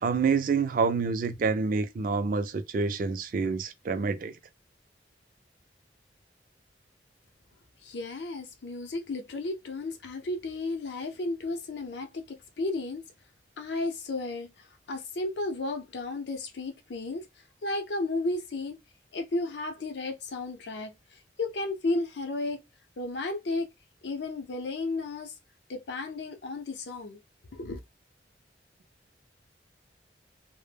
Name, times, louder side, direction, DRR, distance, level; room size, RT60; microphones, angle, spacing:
voice 1, 0.0-4.3, right 4 dB, 50° right, 0.3 m, -27 dB
voice 2, 7.8-13.0 13.6-17.3 17.6-18.8 19.1-22.6 23.0-23.7 24.0-25.3 25.7-27.2 27.5-27.8, left 2 dB, 75° left, 0.6 m, -33 dB
2.1 x 2.1 x 3.2 m
head